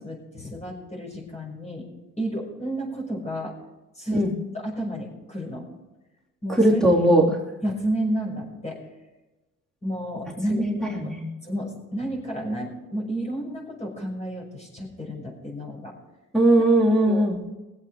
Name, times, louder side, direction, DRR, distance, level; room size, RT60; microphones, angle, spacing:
voice 1, 0.0-1.9 2.2-3.5 3.9-4.3 4.5-5.7 6.4-6.8 7.6-8.8 9.8-10.7 11.0-11.1 11.4-15.9 17.0-17.3, right 1 dB, 20° left, -1 dB, 6.2 m, -31 dB
voice 2, 6.6-7.4 10.6-11.3 16.3-17.4, right 1 dB, ahead, -2 dB, 3.0 m, -19 dB
21.0 x 8.2 x 4.9 m, 1.1 s
cardioid pair, 90°, 30 cm